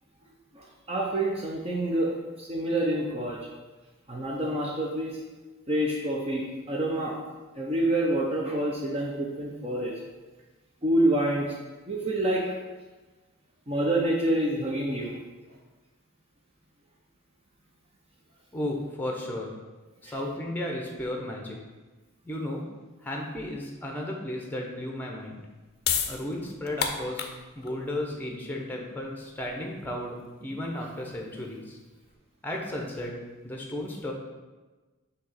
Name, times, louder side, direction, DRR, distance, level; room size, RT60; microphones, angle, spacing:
voice 1, 0.5-2.1 2.4-3.4 4.1-5.2 5.7-7.1 7.6-9.9 10.8-11.5 11.9-12.4 13.7-15.2, right 1 dB, 25° right, -2 dB, 0.6 m, -27 dB
voice 2, 18.5-19.5 20.0-21.6 22.2-22.6 23.0-25.4 26.1-31.8 32.4-33.2 33.4-34.1, left 1 dB, 10° left, 0 dB, 0.7 m, -34 dB
sound 1, 25.4-32.1, left 7 dB, 45° left, 0.5 m, -35 dB
6.2 x 2.9 x 5.6 m, 1.2 s
head